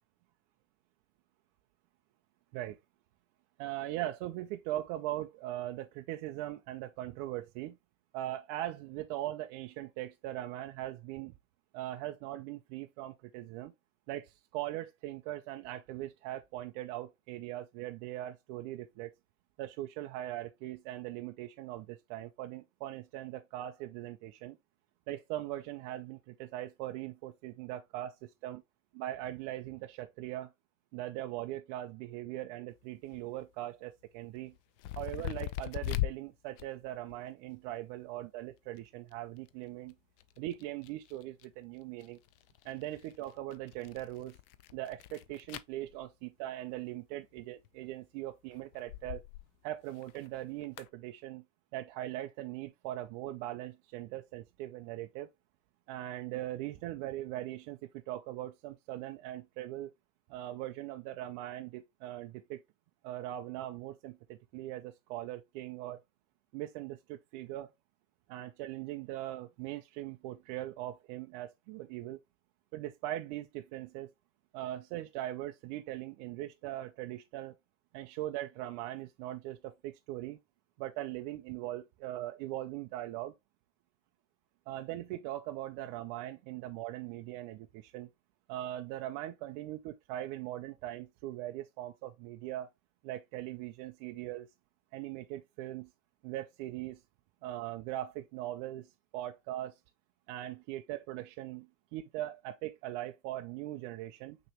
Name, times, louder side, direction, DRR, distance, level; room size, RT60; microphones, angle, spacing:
voice 1, 3.6-7.8 8.1-11.3 11.7-13.7 14.1-19.1 19.6-24.6 25.1-28.6 28.9-30.5 30.9-34.5 35.0-39.9 40.4-42.2 42.6-44.4 44.7-49.2 49.6-51.4 51.7-55.3 55.9-57.8 58.1-59.9 60.3-62.6 63.0-66.0 66.5-67.7 68.3-72.2 72.7-74.1 74.5-77.5 77.9-80.4 80.8-83.4 84.7-88.1 88.5-92.7 93.0-94.5 94.9-95.9 96.2-97.0 97.4-99.8 100.3-104.4, right 14 dB, 35° right, 0.4 m, -40 dB
sound 1, 32.8-32.9 33.1-33.4 34.4-36.2 36.5-37.3 38.8-38.9 39.1-39.5 39.9-41.4 42.0-46.0 47.4-47.8 48.5-49.5 49.8-50.9, left 14 dB, 50° left, 0.5 m, -40 dB
5.8 x 3.0 x 2.9 m
hypercardioid pair, 115°, 38 cm